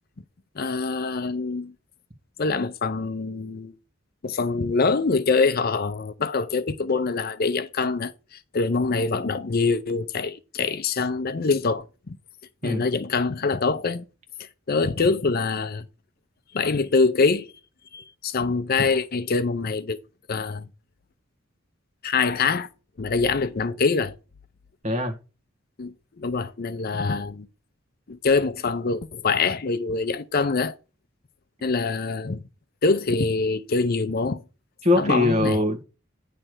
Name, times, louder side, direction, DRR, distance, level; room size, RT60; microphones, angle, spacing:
voice 1, 0.5-1.7 2.4-3.7 4.2-12.2 12.6-14.0 14.4-15.9 16.5-17.5 17.9-20.0 20.3-20.7 22.0-22.7 23.0-24.2 25.8-27.5 28.1-30.7 31.6-32.4 32.8-34.4 35.0-35.6, left 4 dB, 50° left, 0.6 m, -24 dB
voice 2, 24.8-25.2 34.8-35.8, left 2 dB, 35° right, 1.7 m, -22 dB
9.9 x 3.4 x 6.0 m
head